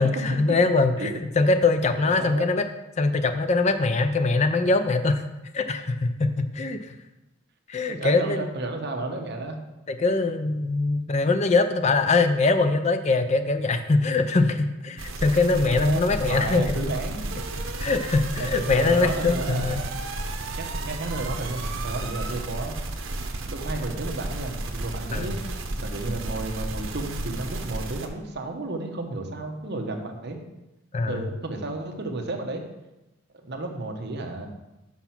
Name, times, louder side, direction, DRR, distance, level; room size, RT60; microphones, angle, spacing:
voice 1, 0.0-2.6 3.0-5.2 5.5-6.8 7.7-8.5 9.9-16.8 17.8-19.8 25.1-25.3 30.9-31.2, left 3 dB, 35° left, 9 dB, 0.5 m, -22 dB
voice 2, 2.0-2.5 7.8-9.6 15.6-17.2 18.4-19.8 20.5-22.8 23.5-30.4 31.1-32.6 33.4-34.5, right 2 dB, 55° right, 3 dB, 1.0 m, -32 dB
sound 1, 15.0-28.1, right 2 dB, 85° right, 0.9 m, -32 dB
5.9 x 5.7 x 5.9 m, 0.97 s
head